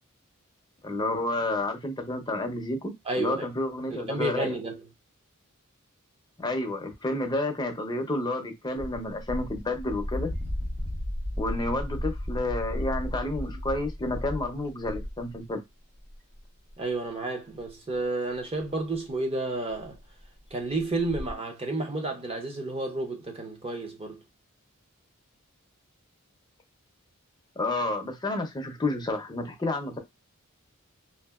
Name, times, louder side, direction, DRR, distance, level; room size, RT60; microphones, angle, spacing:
voice 1, 0.8-4.6 6.4-10.3 11.4-15.6 27.6-30.0, left 2 dB, 20° left, 0.5 m, -30 dB
voice 2, 3.1-3.5 3.9-4.8 16.8-20.0 20.5-24.2, right 2 dB, 25° right, 0.6 m, -31 dB
sound 1, 8.8-15.3 16.0-16.4 16.7-16.8 17.6-17.7 18.6-18.7 19.0-19.1 19.7-19.9 20.2-20.3 20.5-20.6 20.9-21.3, left 1 dB, 75° right, 1.5 m, -34 dB
2.7 x 2.6 x 2.3 m
head